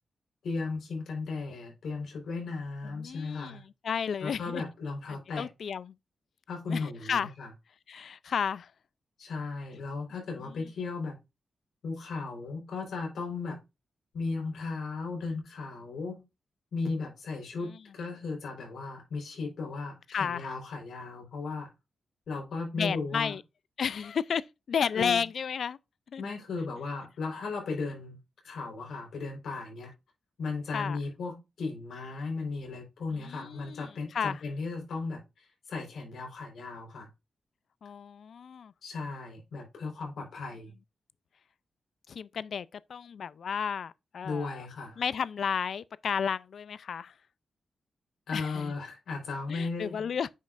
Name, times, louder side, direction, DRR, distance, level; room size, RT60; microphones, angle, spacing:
voice 1, 0.4-3.6 4.2-5.5 6.5-7.5 9.2-11.2 11.8-13.6 14.1-16.2 16.7-21.7 22.3-23.3 24.9-25.2 26.2-28.2 28.4-29.9 30.4-37.1 38.8-40.7 44.2-45.0 48.3-50.0, left 4 dB, 85° left, 3.8 m, -36 dB
voice 2, 2.8-4.6 5.1-6.0 6.7-7.3 7.9-8.7 10.1-10.3 20.1-20.5 22.8-23.4 23.8-25.8 26.1-26.2 30.7-31.0 33.1-34.4 37.8-38.7 42.1-44.7 45.0-47.1 48.3-48.7 49.5-50.3, left 7 dB, 60° left, 0.3 m, -33 dB
9.2 x 5.2 x 2.4 m
wide cardioid pair, 150°, 0 cm